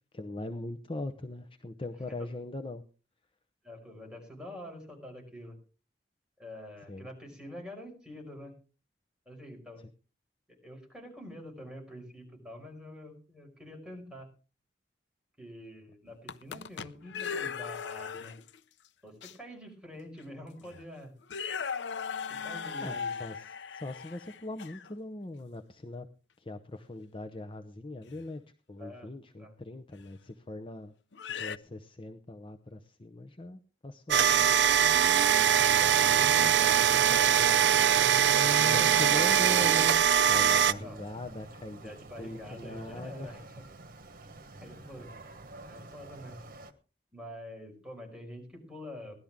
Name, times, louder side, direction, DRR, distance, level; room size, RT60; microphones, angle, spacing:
voice 1, 0.1-2.8 6.9-7.1 22.8-26.1 26.4-28.4 28.7-30.9 31.3-34.3 38.7-41.9 42.2-43.4, left 2 dB, 30° left, 7 dB, 0.8 m, -40 dB
voice 2, 3.6-5.6 6.4-8.5 9.3-9.8 10.5-14.3 15.4-18.3 19.0-21.1 22.4-23.1 28.8-29.5 34.2-34.5 34.9-37.7 38.4-39.5 40.5-41.0 41.8-43.6 44.6-45.1 45.6-46.4 47.1-49.2, left 1 dB, 5° right, 1 dB, 5.3 m, -46 dB
sound 1, 16.1-18.6 19.2-19.3 20.2-20.3 20.6-20.8 21.2-24.9 28.1-28.2 30.0-30.1 31.1-31.6, left 6 dB, 85° left, 0.6 m, -38 dB
sound 2, 34.1-40.7, right 9 dB, 80° right, 0.6 m, -22 dB
sound 3, 39.4-46.7, right 2 dB, 55° right, 1.4 m, -49 dB
17.5 x 12.0 x 3.6 m, 0.36 s
head